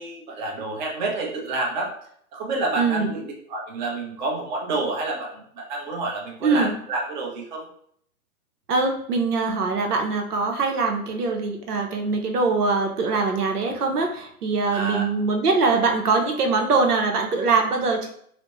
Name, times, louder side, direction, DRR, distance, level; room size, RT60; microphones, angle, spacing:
voice 1, 0.0-1.9 2.3-7.6 14.7-15.1, right 2 dB, 30° right, -1 dB, 0.7 m, -29 dB
voice 2, 2.8-3.1 6.4-6.7 8.7-18.1, right 4 dB, 85° right, 3 dB, 0.8 m, -22 dB
4.0 x 2.1 x 3.0 m, 0.66 s
hypercardioid pair, 135°, 45 cm